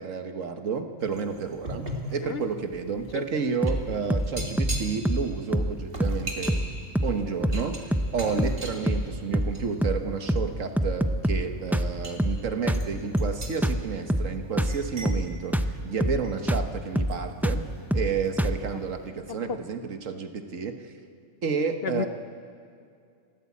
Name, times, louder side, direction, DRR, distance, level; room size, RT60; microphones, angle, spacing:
voice 1, 0.0-6.6 7.0-17.6 17.9-20.9 21.4-22.1, right 5 dB, 75° right, 6 dB, 1.7 m, -31 dB
sound 1, 1.0-9.9 10.2-10.5 11.1-11.3 11.6-12.2 12.7-16.6 17.1-18.5 18.7-19.0, equal, 45° right, 2.6 m, -39 dB
voice 2, 2.2-2.4 3.1-3.2 18.7-18.8 19.5-19.6 21.8-22.1, left 8 dB, 55° left, 11 dB, 0.8 m, -31 dB
sound 2, 3.6-3.8 4.1-4.3 4.6-4.8 5.1-5.3 5.5-5.7 6.0-6.2 6.5-6.7 7.0-7.2 7.4-7.7 7.9-8.1 8.4-8.6 8.9-9.1 9.3-9.6 9.8-10.0 10.3-10.5 10.8-11.5 11.7-11.9 12.2-12.4 12.7-12.9 13.1-13.4 13.6-13.8 14.1-14.3 14.6-14.8 15.1-15.3 15.5-15.7 16.0-16.2 16.5-16.7 17.0-17.2 17.4-17.6 17.9-18.1 18.4-18.6, equal, ahead, 0.5 m, -25 dB
30.0 x 13.5 x 8.5 m, 2.3 s
omnidirectional pair, 1.3 m